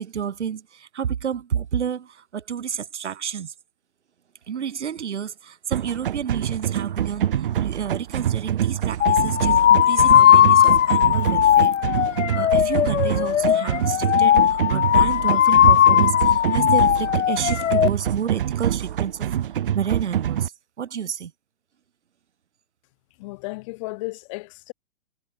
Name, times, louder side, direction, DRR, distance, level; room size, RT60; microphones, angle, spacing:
voice 1, 0.0-3.5 4.5-11.7 12.0-12.1 12.3-19.3 19.7-20.5 20.8-21.3, right 8 dB, 70° right, 5.9 m, -30 dB
sound 1, 5.7-20.5, right 10 dB, 45° right, 2.2 m, -25 dB
sound 2, 9.0-17.9, left 10 dB, 90° left, 0.8 m, -17 dB
voice 2, 23.2-24.7, left 23 dB, 25° left, 4.2 m, -34 dB
hypercardioid pair, 170°, 36 cm